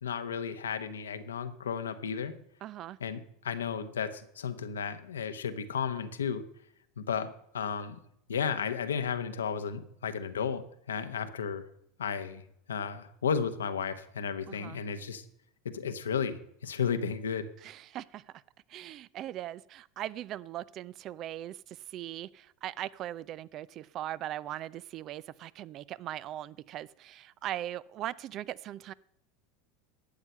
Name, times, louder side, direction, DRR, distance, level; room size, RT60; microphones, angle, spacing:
voice 1, 0.0-2.3 3.0-6.4 7.0-8.0 8.3-10.6 10.9-11.6 12.0-12.4 12.7-15.2 15.7-17.5, left 6 dB, 90° left, 0.9 m, -33 dB
voice 2, 2.6-3.0 14.5-14.8 17.6-18.2 18.7-28.9, right 12 dB, 45° right, 0.5 m, -40 dB
12.0 x 8.1 x 5.6 m
hypercardioid pair, 90°, 0 cm